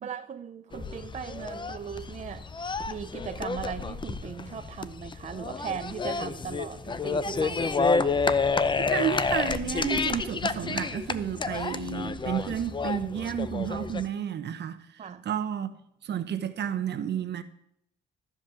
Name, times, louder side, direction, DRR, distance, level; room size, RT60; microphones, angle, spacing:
voice 1, 0.0-2.5 2.9-8.2 15.0-15.3, right 7 dB, 35° right, 0.5 m, -38 dB
sound 1, 0.7-14.1, left 4 dB, 25° left, 0.6 m, -30 dB
voice 2, 8.9-15.7 16.0-17.4, right 8 dB, 60° right, 1.0 m, -31 dB
13.5 x 5.3 x 7.6 m
cardioid pair, 90°, 20 cm